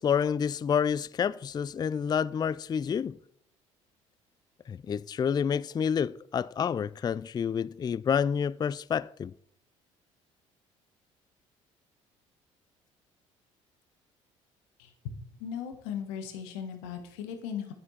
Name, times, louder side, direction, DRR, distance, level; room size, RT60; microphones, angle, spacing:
voice 1, 0.0-3.2 4.7-9.3, left 7 dB, 25° left, 0.4 m, -28 dB
voice 2, 15.4-17.7, left 8 dB, 70° left, 1.4 m, -37 dB
11.0 x 9.3 x 4.2 m
hypercardioid pair, 55°, 17 cm